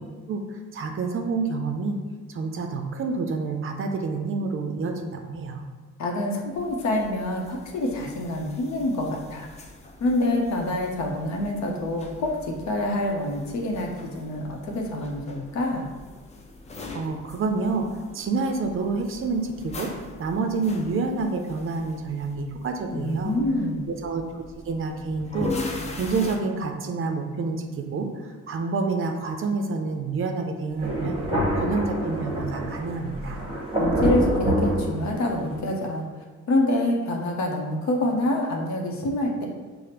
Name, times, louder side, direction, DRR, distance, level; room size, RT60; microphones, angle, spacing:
voice 1, 0.7-1.9 2.3-5.6 16.9-19.9 20.2-23.3 23.9-31.2 31.6-33.4, right 4 dB, 45° right, 4 dB, 0.5 m, -28 dB
voice 2, 6.0-9.5 10.0-15.9 22.9-23.9 33.8-36.1 36.5-39.5, left 1 dB, 65° left, 1 dB, 0.7 m, -26 dB
sound 1, 6.5-26.4, left 3 dB, 25° left, 0.4 m, -41 dB
Thunder, 30.8-35.6, equal, 15° right, 0.9 m, -26 dB
4.9 x 2.1 x 2.9 m, 1.4 s
cardioid pair, 90°, 30 cm